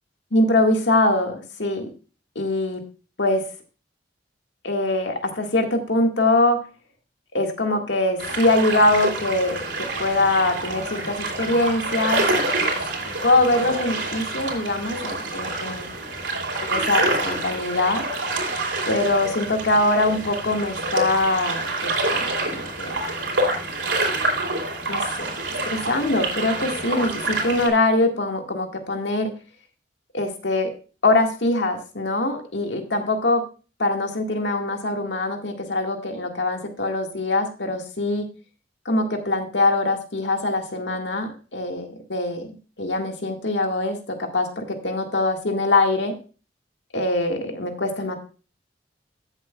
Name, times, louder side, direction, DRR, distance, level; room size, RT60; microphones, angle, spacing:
voice 1, 0.3-1.9 2.3-2.8 3.2-3.4 4.6-6.6 7.3-12.8 13.2-15.9 16.7-18.0 18.8-23.0 24.9-25.3 25.7-29.3 30.1-30.7 31.0-33.4 33.8-38.3 38.8-42.5 42.8-46.1 46.9-48.2, left 2 dB, 75° left, 4 dB, 1.7 m, -23 dB
sound 1, 8.2-27.7, right 2 dB, 85° right, 3.2 m, -27 dB
14.0 x 7.5 x 2.3 m, 0.35 s
head